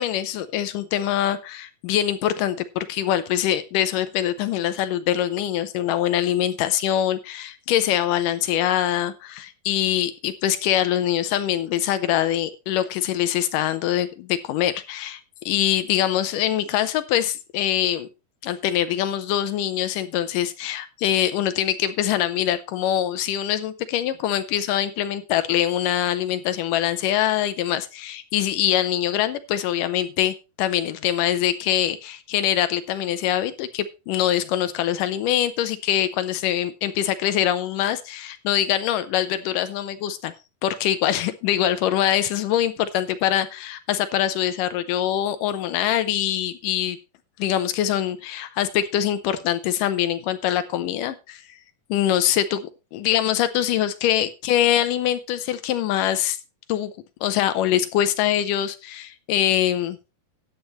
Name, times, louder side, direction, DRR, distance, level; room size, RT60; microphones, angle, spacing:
voice 1, 0.0-15.2 15.5-18.1 18.4-40.3 40.6-47.0 47.4-51.4 51.9-56.4 56.7-56.9 57.2-60.0, left 11 dB, 75° left, 11 dB, 2.0 m, -23 dB
13.5 x 9.3 x 3.1 m, 0.28 s
omnidirectional pair, 4.4 m